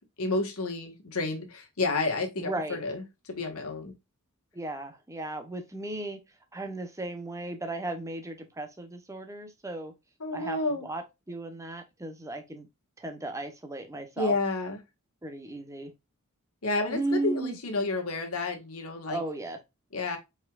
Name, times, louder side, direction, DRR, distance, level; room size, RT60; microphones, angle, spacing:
voice 1, 0.2-3.9 10.2-10.9 14.2-14.8 16.6-19.2 19.9-20.2, left 3 dB, 75° left, 1.6 m, -30 dB
voice 2, 2.4-2.8 4.5-6.2 6.5-9.9 10.3-12.7 13.0-14.4 15.2-15.9 16.9-17.6 19.1-19.6, right 2 dB, 15° right, 0.9 m, -35 dB
4.7 x 4.6 x 2.4 m
head